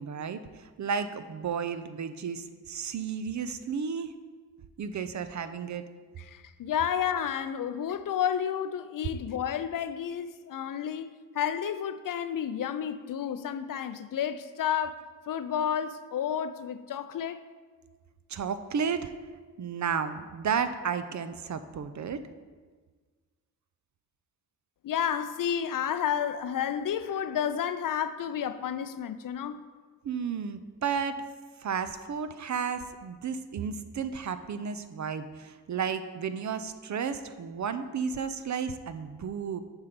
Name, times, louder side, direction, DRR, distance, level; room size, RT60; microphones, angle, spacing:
voice 1, 0.0-4.1 4.8-5.8 18.3-19.1 19.6-22.3 30.0-31.2 31.6-39.6, right 6 dB, 45° right, 0.6 m, -33 dB
voice 2, 6.2-11.1 11.3-17.4 24.8-29.6, left 9 dB, 55° left, 0.5 m, -31 dB
7.2 x 4.5 x 5.1 m
supercardioid pair, 45°, 40 cm